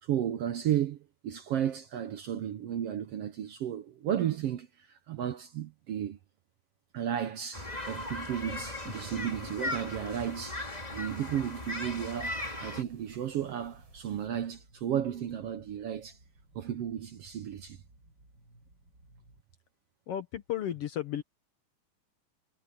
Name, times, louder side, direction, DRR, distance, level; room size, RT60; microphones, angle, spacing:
voice 1, 0.0-1.0 1.2-6.2 6.9-16.2 16.5-17.8, right 10 dB, 65° right, 1.6 m, -33 dB
sound 1, 7.5-12.8, left 2 dB, 15° left, 2.5 m, -38 dB
sound 2, 7.7-14.3, right 3 dB, 50° right, 6.9 m, -56 dB
sound 3, 12.7-19.4, right 2 dB, 30° right, 7.8 m, -60 dB
voice 2, 20.1-21.2, left 11 dB, 65° left, 1.6 m, -34 dB
omnidirectional pair, 3.6 m